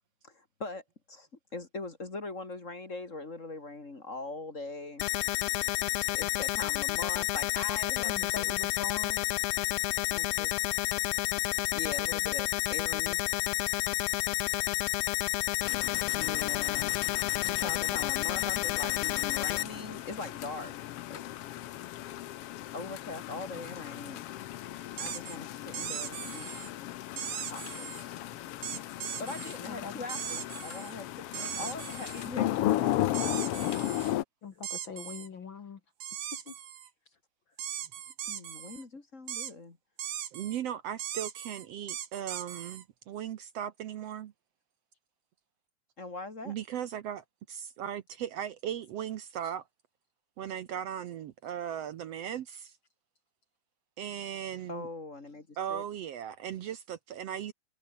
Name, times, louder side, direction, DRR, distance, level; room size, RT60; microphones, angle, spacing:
voice 1, 0.2-5.1 6.2-8.5 10.1-10.6 11.7-13.2 16.1-17.0 17.4-20.8 21.1-21.2 22.7-24.2 25.0-26.5 27.4-27.9 29.2-32.9 38.3-39.8 46.0-46.5 54.7-55.8, left 3 dB, 25° left, 2.5 m, -41 dB
sound 1, 5.0-19.6, left 20 dB, 85° left, 1.4 m, -30 dB
voice 2, 8.0-9.2 29.7-30.0 34.4-35.8 36.5-36.6, left 5 dB, 45° left, 2.0 m, -42 dB
sound 2, 15.6-34.2, left 14 dB, 70° left, 1.5 m, -36 dB
sound 3, 25.0-25.4 25.7-26.7 27.2-28.0 28.6-29.6 30.1-30.9 31.3-32.3 33.1-34.1 34.6-35.3 36.0-36.9 37.6-38.8 39.3-39.5 40.0-40.6 41.0-42.8, right 10 dB, 85° right, 3.4 m, -39 dB
voice 3, 40.3-44.3 46.5-49.6 50.4-52.7 54.0-54.9 55.6-57.5, right 10 dB, 65° right, 1.9 m, -37 dB
omnidirectional pair, 3.4 m